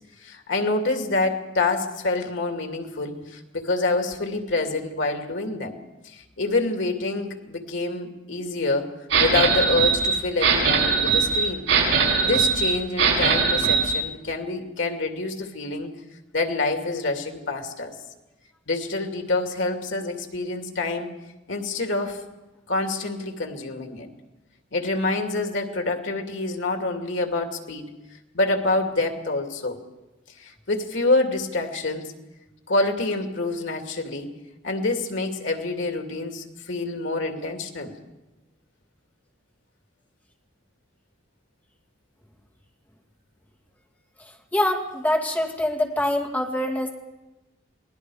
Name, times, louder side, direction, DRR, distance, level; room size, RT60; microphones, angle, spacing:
voice 1, 0.2-5.8 6.0-11.7 12.2-15.9 16.3-18.0 18.7-21.1 21.5-22.2 22.7-24.1 24.7-27.9 28.3-29.8 30.4-32.1 32.7-34.3 34.6-37.9, left 2 dB, 80° left, 4 dB, 2.5 m, -27 dB
sound 1, 9.1-13.9, right 5 dB, 85° right, 7.4 m, -21 dB
voice 2, 44.5-46.9, left 1 dB, 10° left, 2 dB, 2.4 m, -24 dB
28.5 x 19.5 x 4.9 m, 1.0 s
head